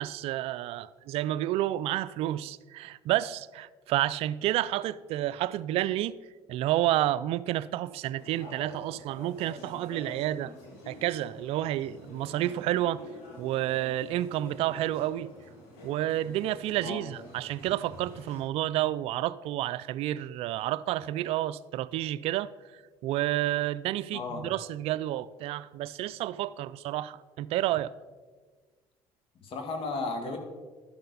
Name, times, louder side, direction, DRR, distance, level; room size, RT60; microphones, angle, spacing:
voice 1, 0.0-6.1 6.5-10.5 10.9-13.0 13.4-15.3 15.8-22.5 23.0-27.9, right 14 dB, 65° right, 0.4 m, -30 dB
sound 1, 8.2-18.4, left 2 dB, 75° left, 2.7 m, -47 dB
voice 2, 24.1-24.5 29.4-30.4, left 3 dB, 60° left, 1.8 m, -34 dB
12.0 x 6.7 x 4.0 m
supercardioid pair, 80°, 11 cm